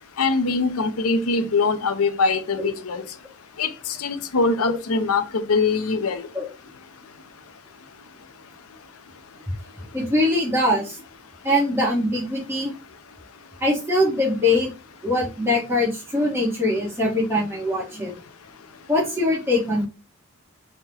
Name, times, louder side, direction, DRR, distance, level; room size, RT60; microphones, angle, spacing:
voice 1, 0.2-3.0 3.6-3.7 4.0-6.2, left 4 dB, 90° left, 0.7 m, -22 dB
voice 2, 9.9-11.0 11.4-12.7 13.6-14.7 15.0-18.1 18.9-19.9, left 1 dB, 10° right, 1.5 m, -22 dB
4.6 x 3.6 x 2.9 m
head